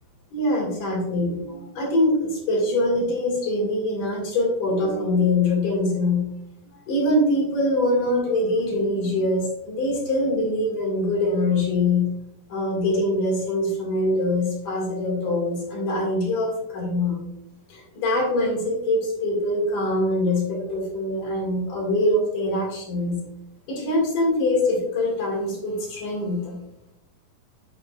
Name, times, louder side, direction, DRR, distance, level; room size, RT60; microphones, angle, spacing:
voice 1, 0.3-6.2 6.9-12.0 12.5-17.2 17.7-23.2 23.7-26.6, left 1 dB, 75° left, -2 dB, 3.9 m, -23 dB
8.6 x 7.1 x 2.5 m, 0.79 s
omnidirectional pair, 3.7 m